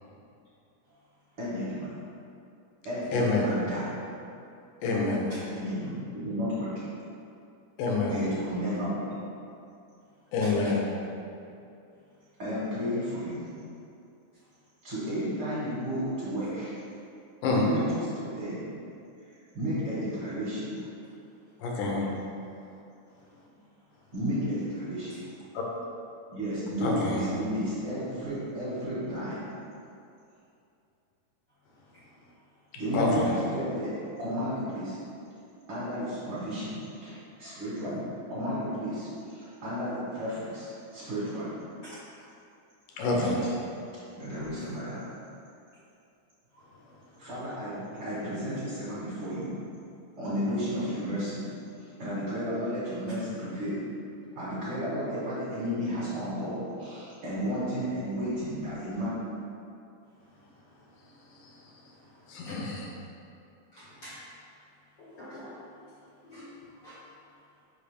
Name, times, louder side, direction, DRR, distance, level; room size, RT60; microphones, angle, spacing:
voice 1, 1.4-1.9 2.8-3.9 5.5-6.7 8.1-9.0 12.4-13.5 14.8-16.8 17.5-18.6 19.5-20.7 24.1-25.2 26.3-29.4 32.7-35.0 35.7-38.0 38.3-41.5 43.1-43.3 44.1-45.0 47.2-49.5 50.2-51.4 52.0-53.8 54.3-59.2, equal, 55° right, -9 dB, 1.8 m, -33 dB
voice 2, 3.1-3.5 4.8-5.3 7.8-8.2 10.3-10.8 17.4-17.6 21.6-22.1 25.5-25.6 26.8-27.2 32.9-33.3 43.0-43.4 62.3-62.9, left 3 dB, 85° left, -2 dB, 2.4 m, -27 dB
voice 3, 10.4-10.7 25.1-25.2 41.8-41.9 62.5-62.6 63.7-64.2 65.0-65.5 66.2-66.4 66.8-67.0, equal, 60° left, -10 dB, 1.1 m, -46 dB
5.6 x 5.3 x 3.4 m, 2.6 s
omnidirectional pair, 3.6 m